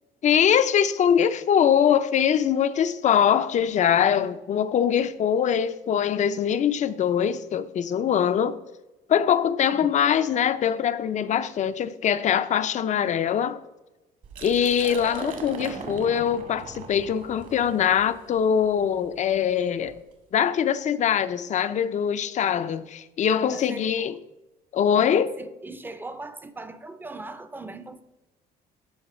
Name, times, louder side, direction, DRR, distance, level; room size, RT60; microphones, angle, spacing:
voice 1, 0.2-8.6 9.1-13.6 14.4-20.0 20.3-24.2 24.7-25.3, left 8 dB, 45° left, 0.6 m, -23 dB
Liquid, 14.2-20.0, right 4 dB, 50° right, 1.7 m, -40 dB
voice 2, 23.5-24.2 25.0-28.0, right 2 dB, 10° right, 0.6 m, -40 dB
13.0 x 4.8 x 4.3 m
cardioid pair, 110°, 17 cm